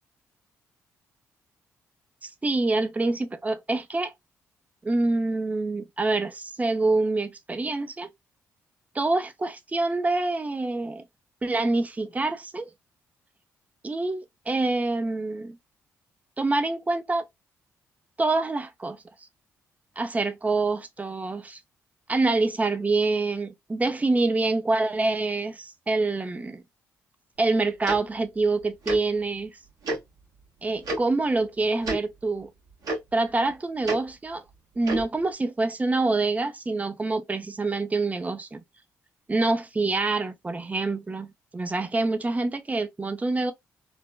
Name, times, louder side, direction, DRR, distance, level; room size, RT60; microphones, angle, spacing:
voice 1, 2.2-4.1 4.8-8.1 8.9-11.0 11.4-12.7 13.8-15.6 16.4-17.3 18.2-19.0 20.0-21.6 22.1-26.6 27.4-29.5 30.6-32.5 33.1-34.4 34.8-38.6 39.3-43.5, right 3 dB, 20° right, 0.5 m, -26 dB
Tick-tock, 27.9-28.0 28.8-29.0 29.8-30.0 30.8-31.0 31.8-32.0 32.8-33.0 33.8-34.0 34.8-35.0, right 2 dB, 60° right, 1.4 m, -28 dB
3.3 x 2.1 x 2.2 m
hypercardioid pair, 45°, 7 cm